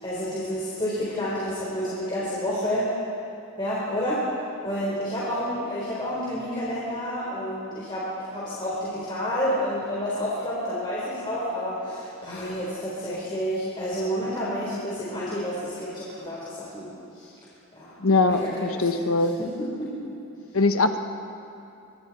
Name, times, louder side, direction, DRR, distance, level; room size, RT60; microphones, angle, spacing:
voice 1, 0.0-2.9 3.6-4.2 4.6-17.3 17.7-17.9 18.2-19.0 19.8-19.9, equal, 25° left, -8 dB, 4.2 m, -29 dB
voice 2, 18.0-19.4 20.5-21.0, left 3 dB, 85° left, 7 dB, 1.2 m, -22 dB
25.5 x 24.0 x 4.3 m, 2.8 s
head